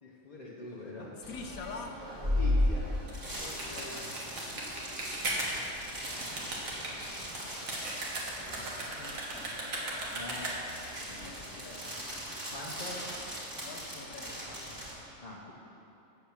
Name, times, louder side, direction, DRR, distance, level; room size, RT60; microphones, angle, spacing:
voice 1, 0.0-1.1 2.2-2.9 10.1-10.6 11.0-11.3 12.5-13.0 15.2-15.5, left 2 dB, 30° left, -6 dB, 1.0 m, -43 dB
sound 1, 1.2-14.9, left 1 dB, 40° right, 2.7 m, -37 dB
voice 2, 1.3-2.0 3.3-4.2 8.5-9.6 11.2-11.8 13.6-15.0, left 4 dB, 90° left, 4 dB, 1.3 m, -46 dB
sound 2, 2.9-10.8, right 2 dB, 75° right, 1.9 m, -37 dB
8.7 x 7.4 x 6.6 m, 3.0 s
omnidirectional pair, 1.4 m